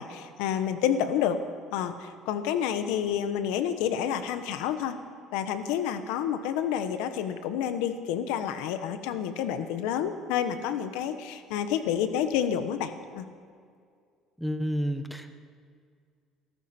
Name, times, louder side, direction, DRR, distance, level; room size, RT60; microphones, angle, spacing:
voice 1, 0.0-1.4 1.7-5.0 5.3-13.2, left 9 dB, 90° left, 10 dB, 1.1 m, -29 dB
voice 2, 14.4-15.4, equal, ahead, 8 dB, 1.1 m, -30 dB
23.0 x 13.0 x 4.4 m, 2.2 s
cardioid pair, 125°, 0 cm